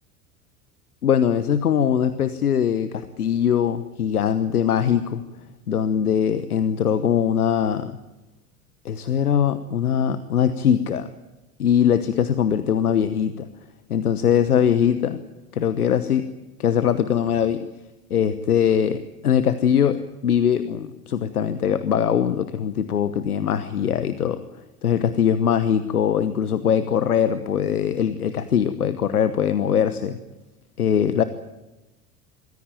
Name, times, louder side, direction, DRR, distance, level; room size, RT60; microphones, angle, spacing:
voice 1, 1.0-5.2 5.7-8.0 8.8-11.1 11.6-13.5 13.9-15.2 15.5-16.3 16.6-17.7 18.1-24.5 24.8-30.2 30.8-31.2, left 8 dB, 80° left, 13 dB, 1.1 m, -21 dB
23.0 x 16.0 x 9.1 m, 1.0 s
figure-of-eight pair, 75°, 44 cm